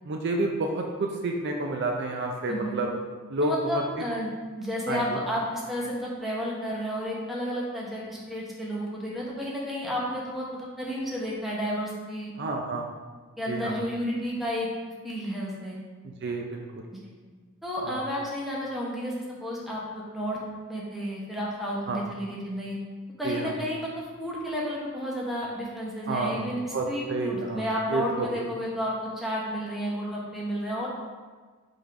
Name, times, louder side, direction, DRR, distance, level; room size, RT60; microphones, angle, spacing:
voice 1, 0.0-2.9 3.3-3.8 4.9-5.2 12.4-12.9 13.5-13.8 16.0-16.8 17.9-18.0 21.9-22.0 23.2-23.5 26.1-26.4 26.7-27.6 27.9-28.5, right 2 dB, 50° right, 2 dB, 0.5 m, -29 dB
voice 2, 3.4-4.3 4.6-12.3 13.4-14.7 15.0-15.8 16.9-17.1 17.6-19.1 19.4-20.4 20.7-22.8 23.2-23.9 24.2-30.9, equal, ahead, -5 dB, 1.0 m, -31 dB
5.4 x 3.8 x 4.7 m, 1.4 s
head